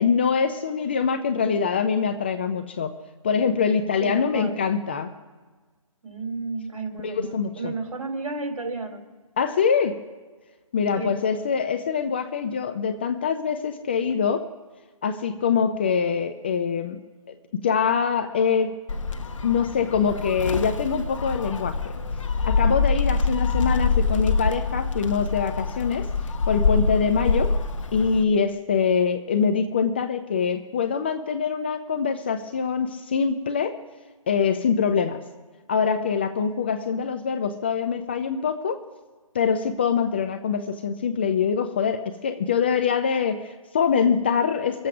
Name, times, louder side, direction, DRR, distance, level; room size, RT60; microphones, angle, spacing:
voice 1, 0.0-2.9 3.2-5.1 7.0-7.7 9.4-10.0 10.7-14.5 15.0-17.0 17.5-18.8 19.4-21.9 22.5-26.1 26.5-27.5 27.9-33.8 34.3-35.2 35.7-38.8 39.3-44.9, left 6 dB, 20° left, 8 dB, 0.4 m, -24 dB
voice 2, 4.0-4.6 6.0-9.0 10.9-11.2, right 3 dB, 70° right, 3 dB, 3.1 m, -32 dB
Gull seagull, 18.9-28.2, left 4 dB, 60° left, 1.0 m, -25 dB
23.0 x 7.7 x 6.1 m, 1.3 s
figure-of-eight pair, 150°, 18 cm